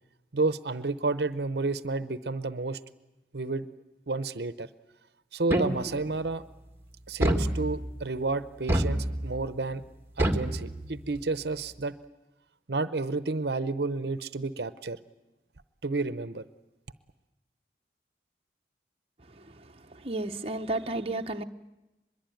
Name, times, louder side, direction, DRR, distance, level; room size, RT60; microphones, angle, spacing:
voice 1, 0.3-2.8 3.3-3.7 4.1-4.7 5.3-6.4 7.1-9.8 10.2-11.9 12.7-15.0 15.8-16.4, right 3 dB, 65° right, 0.8 m, -31 dB
sound 1, 5.5-6.2 7.2-8.1 8.7-9.5 10.2-11.2, right 1 dB, 15° right, 1.6 m, -28 dB
voice 2, 19.3-21.4, right 2 dB, 35° right, 0.9 m, -33 dB
23.5 x 22.0 x 9.2 m
head